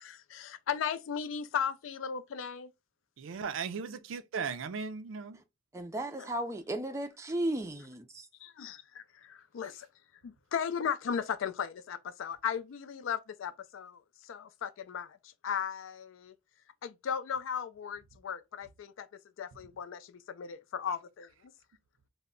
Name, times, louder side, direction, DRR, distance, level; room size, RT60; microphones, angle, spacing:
voice 1, 0.0-2.7 6.2-6.3 8.4-9.9 10.2-16.3 16.8-21.5, left 7 dB, 90° left, 0.4 m, -37 dB
voice 2, 3.2-5.4, right 5 dB, 90° right, 0.4 m, -37 dB
voice 3, 5.7-8.3, right 1 dB, 15° right, 0.3 m, -35 dB
2.2 x 2.0 x 3.6 m
head